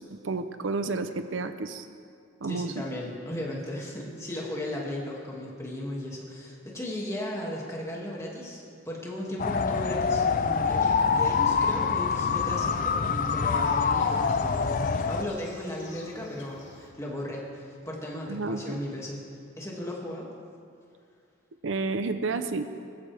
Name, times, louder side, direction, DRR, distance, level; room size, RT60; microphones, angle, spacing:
voice 1, 0.0-1.9 2.4-2.7 18.3-18.8 21.6-22.7, right 3 dB, 75° right, 9 dB, 0.7 m, -31 dB
voice 2, 2.5-19.2 19.6-20.3, left 1 dB, 15° left, -3 dB, 2.3 m, -36 dB
sound 1, 9.4-15.2, left 5 dB, 45° left, 0.4 m, -25 dB
sound 2, 10.5-16.9, left 3 dB, 65° left, 2.5 m, -52 dB
19.5 x 14.5 x 3.5 m, 2.3 s
head